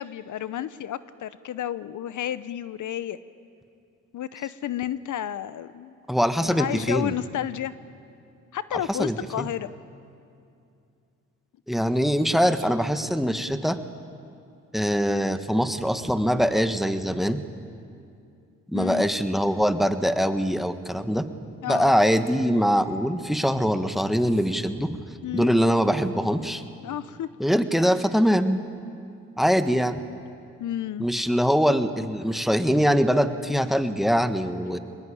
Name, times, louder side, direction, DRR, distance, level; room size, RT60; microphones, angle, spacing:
voice 1, 0.0-3.2 4.1-5.9 6.4-7.7 8.5-9.7 18.7-19.1 21.6-21.9 25.2-25.5 26.8-27.3 30.6-31.1, left 11 dB, 65° left, 15 dB, 0.8 m, -31 dB
voice 2, 6.1-7.1 8.7-9.5 11.7-13.8 14.7-17.4 18.7-21.2 21.7-25.0 25.3-26.6 27.4-28.6 29.4-30.0 31.0-34.8, equal, ahead, 9 dB, 1.5 m, -23 dB
22.5 x 21.0 x 8.7 m, 2.5 s
supercardioid pair, 60°, 33 cm